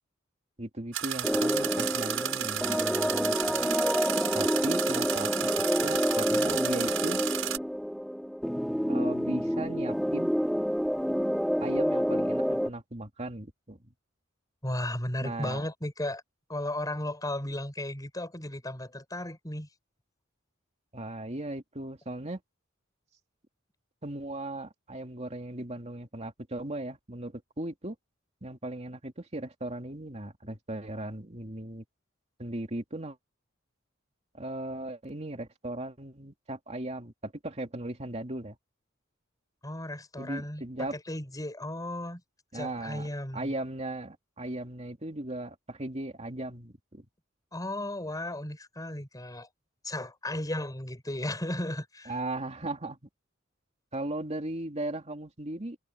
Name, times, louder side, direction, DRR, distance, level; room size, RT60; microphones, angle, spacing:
voice 1, 0.6-3.7 4.3-5.3 5.8-7.2 8.9-10.3 11.6-13.9 15.2-15.6 20.9-22.4 24.0-28.0 28.4-31.8 32.4-33.2 34.3-38.6 40.2-41.0 42.5-43.1 43.3-47.1 52.1-53.0 53.9-55.8, right 1 dB, 35° right, 2.7 m, -37 dB
sound 1, 0.9-7.6, right 10 dB, 85° right, 6.2 m, -32 dB
sound 2, 1.2-12.7, equal, ahead, 2.6 m, -28 dB
voice 2, 14.6-16.2 16.5-19.7 39.6-42.2 42.5-43.5 47.5-49.5 49.8-52.1, left 1 dB, 20° left, 6.4 m, -35 dB
head